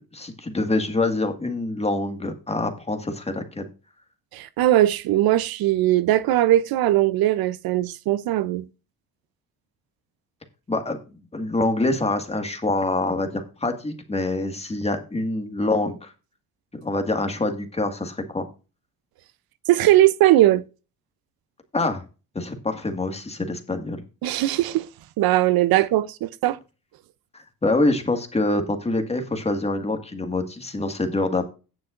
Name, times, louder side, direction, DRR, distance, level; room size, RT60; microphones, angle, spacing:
voice 1, 0.0-3.7 10.7-11.0 11.3-16.1 16.8-18.5 21.7-22.0 22.4-24.0 27.3-31.5, left 2 dB, 15° left, 1.8 m, -25 dB
voice 2, 4.3-8.6 19.7-20.6 24.2-24.9 25.2-26.6, right 14 dB, 75° right, 0.7 m, -19 dB
17.5 x 5.9 x 2.5 m
cardioid pair, 110°, 36 cm